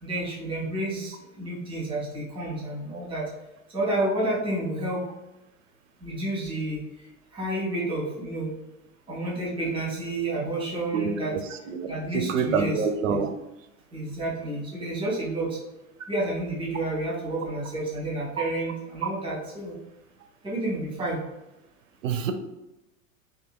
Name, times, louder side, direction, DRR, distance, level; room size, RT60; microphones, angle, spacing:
voice 1, 0.0-3.3 3.7-5.0 6.0-6.8 7.3-8.5 9.1-11.4 11.8-13.3 13.9-15.6 16.1-19.8 20.4-21.2, right 1 dB, 10° right, -4 dB, 0.9 m, -30 dB
voice 2, 12.1-13.3 19.0-19.1 22.0-22.3, right 6 dB, 65° right, 7 dB, 0.5 m, -26 dB
2.8 x 2.6 x 2.3 m, 0.96 s
figure-of-eight pair, 90°, 43 cm